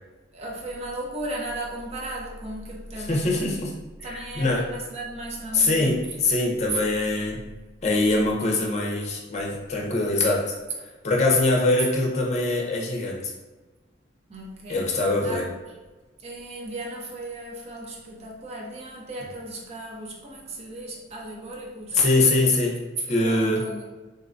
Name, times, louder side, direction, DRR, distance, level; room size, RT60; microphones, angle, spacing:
voice 1, 0.3-3.5 4.0-6.0 14.3-14.9 15.2-15.5 16.2-22.0 23.2-23.8, right 1 dB, 35° right, -2 dB, 0.6 m, -36 dB
voice 2, 3.0-3.7 4.0-4.6 5.5-7.4 7.8-10.4 11.0-13.3 14.7-15.4 21.9-22.7 23.1-23.6, left 2 dB, 40° left, -1 dB, 0.6 m, -23 dB
3.8 x 2.2 x 2.5 m, 1.2 s
head